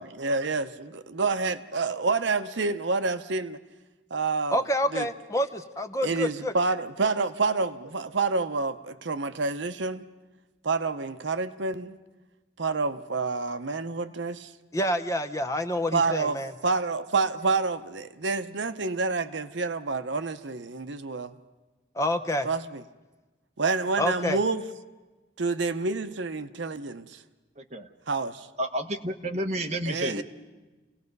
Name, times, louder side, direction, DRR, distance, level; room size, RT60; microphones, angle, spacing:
voice 1, 0.0-3.6 4.1-4.6 4.9-5.1 6.0-10.1 10.6-12.0 12.6-14.5 15.9-16.4 16.6-21.3 22.4-22.8 23.6-24.6 25.4-27.2 28.1-28.5 29.9-30.2, right 3 dB, 70° right, 0.8 m, -28 dB
voice 2, 4.5-6.5 14.7-16.5 21.9-22.5 24.0-24.4, equal, 15° left, 0.7 m, -27 dB
voice 3, 27.6-27.9 28.6-30.2, right 1 dB, 35° right, 1.2 m, -30 dB
29.0 x 18.0 x 5.4 m
head